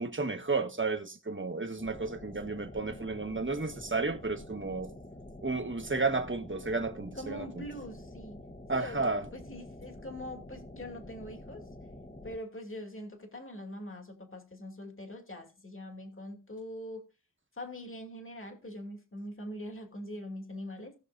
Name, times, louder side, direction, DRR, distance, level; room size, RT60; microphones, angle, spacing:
voice 1, 0.0-4.9 5.4-7.4 8.7-9.2, right 3 dB, 40° right, 1.4 m, -32 dB
sound 1, 1.8-12.4, left 1 dB, 25° left, 1.2 m, -48 dB
voice 2, 7.2-8.4 8.7-11.6 12.2-17.0 17.6-20.9, left 1 dB, 40° left, 2.5 m, -43 dB
18.5 x 6.5 x 2.6 m
wide cardioid pair, 65°, 32 cm